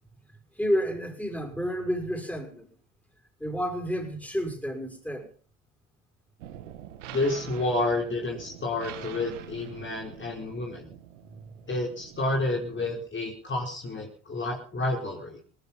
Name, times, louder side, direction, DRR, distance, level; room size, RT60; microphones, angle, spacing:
voice 1, 0.6-2.6 3.4-5.3, equal, 5° left, 6.6 m, -30 dB
sound 1, 6.4-13.0, right 11 dB, 85° right, 2.1 m, -45 dB
voice 2, 7.1-10.9 11.7-15.4, left 2 dB, 30° left, 4.8 m, -30 dB
18.5 x 14.0 x 5.6 m
hypercardioid pair, 65°, 36 cm